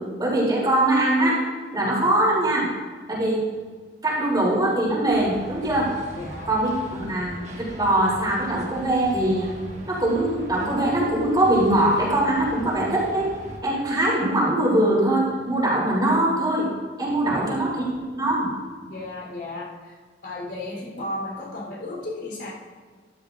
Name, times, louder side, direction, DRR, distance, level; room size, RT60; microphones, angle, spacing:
voice 1, 0.2-1.4 1.7-2.7 3.1-3.5 4.0-6.0 6.5-9.5 9.9-13.3 13.6-16.7 17.0-18.5, right 1 dB, 25° right, -6 dB, 3.4 m, -22 dB
sound 1, 5.1-13.6, right 1 dB, 40° right, 1.5 m, -40 dB
voice 2, 6.1-6.5 17.2-17.5 18.9-20.0 20.2-22.5, left 2 dB, 65° left, -4 dB, 3.9 m, -34 dB
13.5 x 12.5 x 2.6 m, 1.5 s
head